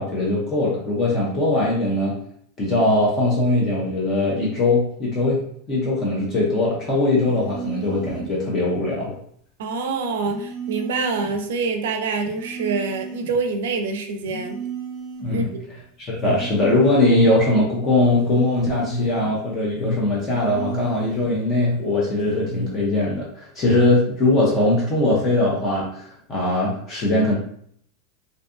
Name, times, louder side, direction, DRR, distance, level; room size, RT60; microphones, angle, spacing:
voice 1, 0.0-2.2 2.6-5.4 5.7-9.1 15.2-15.5 16.0-27.3, left 2 dB, 20° left, -5 dB, 0.5 m, -21 dB
sound 1, 7.2-8.4 10.2-11.4 12.2-13.4 14.2-15.4 16.2-17.4 18.2-19.4 20.2-21.4 22.2-22.5, right 5 dB, 5° right, 1.0 m, -34 dB
voice 2, 9.6-14.6 15.3-15.6, right 4 dB, 85° right, 5 dB, 0.4 m, -26 dB
sound 2, 15.2-23.1, left 2 dB, 70° left, 1.0 m, -32 dB
2.5 x 2.5 x 2.3 m, 0.64 s
supercardioid pair, 175°, 0 cm